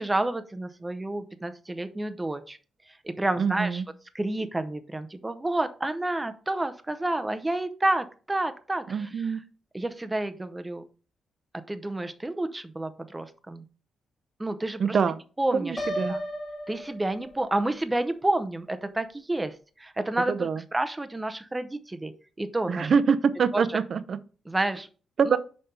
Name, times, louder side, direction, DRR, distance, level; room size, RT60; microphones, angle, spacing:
voice 1, 0.0-2.6 3.0-3.8 4.1-9.1 9.7-10.8 11.7-13.6 14.4-14.8 15.4-15.8 16.1-16.2 16.7-19.5 19.8-22.1 22.4-22.9 23.5-23.6 24.5-24.9 25.3-25.4, right 2 dB, 10° right, 0.7 m, -29 dB
voice 2, 3.4-3.9 8.9-9.4 14.8-15.2 15.5-16.1 20.3-20.6 22.7-24.2 25.2-25.4, right 6 dB, 50° right, 0.6 m, -25 dB
Piano, 15.8-17.7, equal, 30° left, 1.7 m, -34 dB
5.7 x 5.3 x 4.2 m
cardioid pair, 120°, 0 cm